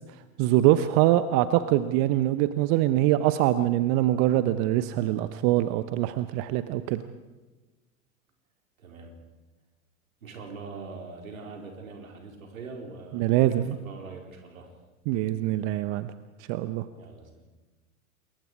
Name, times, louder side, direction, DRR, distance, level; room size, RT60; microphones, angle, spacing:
voice 1, 0.4-7.0 13.1-13.7 15.1-16.1 16.5-16.8, right 14 dB, 35° right, 13 dB, 0.9 m, -23 dB
voice 2, 8.8-9.1 10.2-14.7 16.9-17.5, right 4 dB, 65° right, 3 dB, 4.4 m, -43 dB
27.5 x 22.5 x 4.9 m, 1.2 s
figure-of-eight pair, 90°, 43 cm